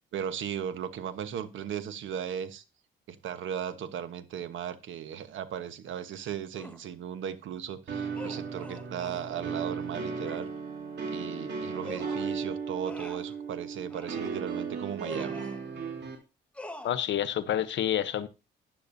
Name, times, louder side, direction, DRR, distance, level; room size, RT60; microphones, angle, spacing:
voice 1, 0.1-2.6 3.1-10.5 11.0-15.4, right 9 dB, 75° right, 1.2 m, -36 dB
sound 1, 6.6-6.9 8.1-9.3 10.2-10.5 11.8-12.4 12.8-13.3 13.9-14.4 15.0-15.6 16.5-16.9, left 1 dB, 5° left, 1.3 m, -44 dB
sound 2, 7.9-16.2, right 5 dB, 60° right, 3.2 m, -36 dB
voice 2, 16.8-18.3, left 10 dB, 65° left, 0.9 m, -28 dB
12.0 x 10.0 x 2.7 m
cardioid pair, 90°, 20 cm